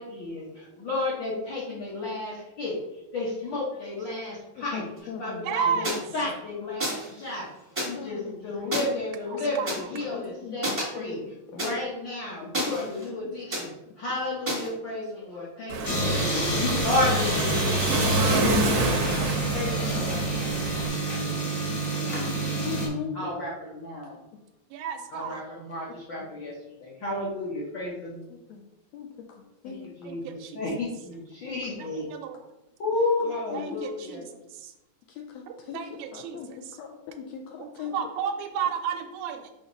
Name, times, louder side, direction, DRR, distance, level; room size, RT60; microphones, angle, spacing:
voice 1, 0.0-2.8 3.1-4.8 5.2-7.5 7.8-11.2 11.5-18.9 19.5-21.3 23.1-24.2 25.1-28.2 29.6-32.0 32.8-34.2, left 2 dB, 60° left, -6 dB, 1.2 m, -32 dB
voice 2, 4.7-5.8 7.9-8.9 9.9-11.6 12.7-12.9 14.7-14.8 16.3-16.7 18.4-18.6 19.0-19.1 19.4-19.8 20.2-20.3 21.7-22.1 22.6-23.3 28.5-28.6 28.9-29.1 29.6-29.8 33.2-33.8 35.3-35.8 36.1-37.9, left 7 dB, 80° left, 2 dB, 1.6 m, -38 dB
voice 3, 5.4-6.0 9.3-9.9 24.7-25.4 30.0-30.6 31.8-32.4 33.5-34.2 34.5-34.7 35.5-36.8 37.6-39.5, right 7 dB, 90° right, 6 dB, 2.1 m, -33 dB
sound 1, 5.8-6.0 6.8-7.1 7.8-7.9 8.7-8.8 9.7-9.8 10.6-10.8 11.6-11.7 12.5-13.1 13.5-13.6 14.5-14.7, right 1 dB, 25° right, 0.7 m, -29 dB
Waves surf, 15.7-20.9, right 3 dB, 70° right, 1.2 m, -28 dB
sound 2, 15.8-22.9, right 1 dB, 35° left, 1.1 m, -27 dB
6.4 x 2.9 x 5.1 m, 0.96 s
omnidirectional pair, 3.5 m